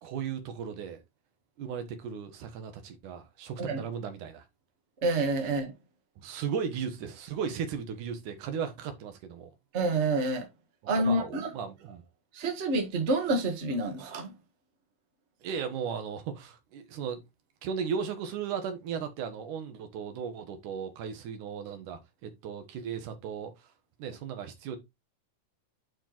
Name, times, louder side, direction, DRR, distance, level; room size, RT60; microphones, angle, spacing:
voice 1, 0.0-1.0 1.6-4.4 6.2-9.5 10.8-12.0 15.4-17.2 17.6-23.7 24.0-24.8, right 7 dB, 75° right, 2.8 m, -36 dB
voice 2, 5.0-5.7 9.7-10.5 10.9-11.5 12.3-14.3, right 2 dB, 35° right, 1.1 m, -28 dB
9.8 x 4.5 x 3.0 m
omnidirectional pair, 3.7 m